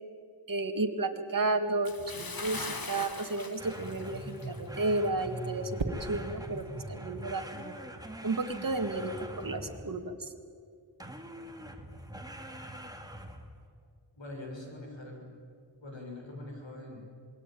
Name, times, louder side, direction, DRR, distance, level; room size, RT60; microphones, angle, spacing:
voice 1, 0.5-7.8 8.2-10.3, right 2 dB, 50° right, 4 dB, 1.9 m, -32 dB
Bathtub (filling or washing) / Splash splatter, 1.8-4.7 5.0-5.2 5.8-5.9, left 3 dB, 50° left, 1.9 m, -41 dB
sound 1, 3.6-10.0 11.0-13.6, right 1 dB, 10° right, 2.4 m, -43 dB
sound 2, 5.8-6.3 8.3-8.6, right 3 dB, 90° right, 2.0 m, -37 dB
voice 2, 14.2-15.3 15.8-17.0, left 1 dB, 80° left, 0 dB, 7.1 m, -43 dB
27.5 x 21.0 x 9.3 m, 2.3 s
wide cardioid pair, 75°, 44 cm